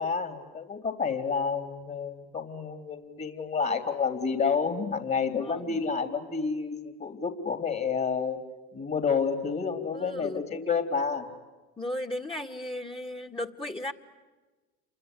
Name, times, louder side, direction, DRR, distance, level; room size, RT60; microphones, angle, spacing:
voice 1, 0.0-8.4 8.7-11.3, left 5 dB, 35° left, 7 dB, 3.6 m, -29 dB
voice 2, 5.4-5.8 9.9-10.4 11.8-13.9, left 1 dB, 15° left, 7 dB, 2.0 m, -35 dB
28.5 x 24.5 x 8.3 m, 1.3 s
supercardioid pair, 85°, 31 cm